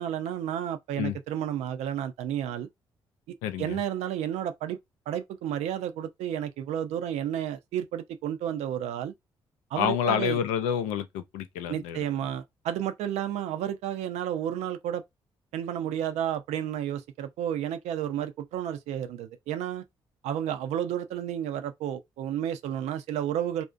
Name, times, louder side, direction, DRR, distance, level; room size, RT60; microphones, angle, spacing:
voice 1, 0.0-2.7 3.3-4.8 5.1-9.1 9.7-10.4 11.7-15.0 15.5-19.8 20.2-23.6, right 10 dB, 75° right, 0.4 m, -31 dB
voice 2, 3.4-3.8 9.8-12.0, left 8 dB, 85° left, 0.4 m, -28 dB
2.5 x 2.1 x 2.4 m
hypercardioid pair, 50°, 11 cm